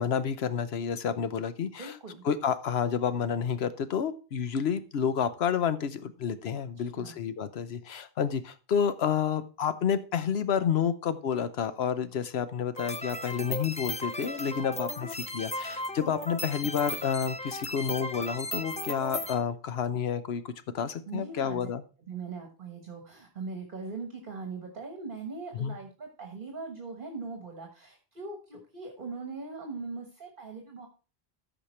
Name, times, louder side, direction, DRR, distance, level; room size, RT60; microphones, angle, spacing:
voice 1, 0.0-1.9 2.2-21.8 25.6-25.8, left 7 dB, 80° left, 13 dB, 1.0 m, -30 dB
voice 2, 1.8-2.2 6.8-7.2 13.4-13.5 21.1-21.6 22.1-30.9, right 4 dB, 55° right, 3 dB, 1.5 m, -40 dB
sound 1, 12.8-19.3, left 1 dB, 10° left, 0.5 m, -36 dB
13.5 x 5.1 x 4.4 m, 0.36 s
omnidirectional pair, 1.0 m